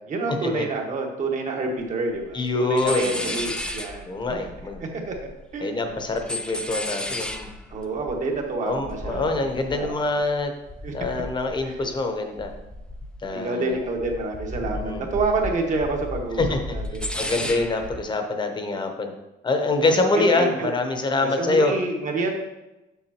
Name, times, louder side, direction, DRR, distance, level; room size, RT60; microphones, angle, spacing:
voice 1, 0.0-4.2 4.8-5.1 5.5-5.7 7.7-10.0 10.8-10.9 11.6-11.7 13.3-16.4 16.7-17.1 17.4-17.5 19.9-20.7 21.4-22.3, right 3 dB, 45° right, 1 dB, 1.5 m, -28 dB
sound 1, 1.8-1.9 2.1-2.5 2.8-5.5 5.8-12.1 12.4-13.4 13.7-18.0, left 1 dB, 5° left, 0.5 m, -34 dB
voice 2, 2.3-3.4 4.1-4.8 5.6-7.5 8.6-10.5 10.9-12.5 13.2-13.8 14.7-15.1 16.4-16.6 17.2-19.1 19.4-21.7, left 2 dB, 25° left, 5 dB, 1.0 m, -25 dB
7.2 x 6.3 x 3.0 m, 0.99 s
cardioid pair, 110°, 17 cm